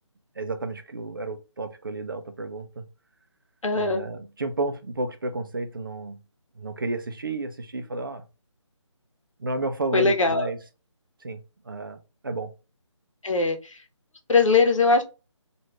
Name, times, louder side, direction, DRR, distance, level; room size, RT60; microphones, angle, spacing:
voice 1, 0.4-2.8 3.7-6.2 6.5-8.2 9.4-10.6 11.2-12.5, right 2 dB, 45° right, 0.5 m, -32 dB
voice 2, 3.6-4.0 9.9-10.5 13.2-13.8 14.3-15.0, left 4 dB, 85° left, 1.0 m, -21 dB
3.2 x 2.5 x 2.9 m
figure-of-eight pair, 175°, 16 cm